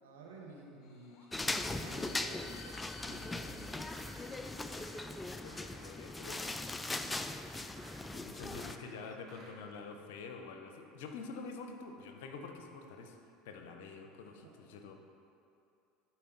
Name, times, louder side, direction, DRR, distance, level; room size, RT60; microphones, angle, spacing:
voice 1, 0.0-3.9 7.0-7.3 8.0-9.1 9.7-9.8 14.4-14.5, right 2 dB, 85° right, -1 dB, 1.2 m, -54 dB
sound 1, 0.8-7.6, left 4 dB, 50° left, 1.1 m, -56 dB
sound 2, 1.3-8.8, left 2 dB, 15° left, 0.4 m, -40 dB
sound 3, 3.7-9.7, right 2 dB, 55° right, 1.5 m, -58 dB
voice 2, 5.3-6.5 8.1-13.2 13.4-14.9, left 4 dB, 75° left, 4 dB, 0.8 m, -47 dB
11.0 x 4.6 x 3.9 m, 2.6 s
hypercardioid pair, 85°, 0 cm